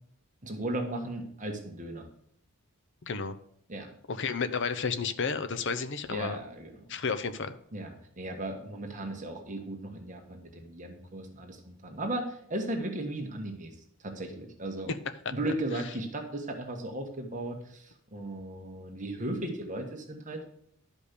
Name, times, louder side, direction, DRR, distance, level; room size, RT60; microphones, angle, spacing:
voice 1, 0.4-2.1 3.7-3.9 6.1-6.8 7.7-13.8 14.0-14.9 15.3-20.4, right 1 dB, 35° right, 3 dB, 1.4 m, -36 dB
voice 2, 3.0-3.3 4.1-6.4 6.9-7.5, left 5 dB, 55° left, 11 dB, 0.7 m, -31 dB
11.5 x 5.2 x 6.7 m, 0.67 s
head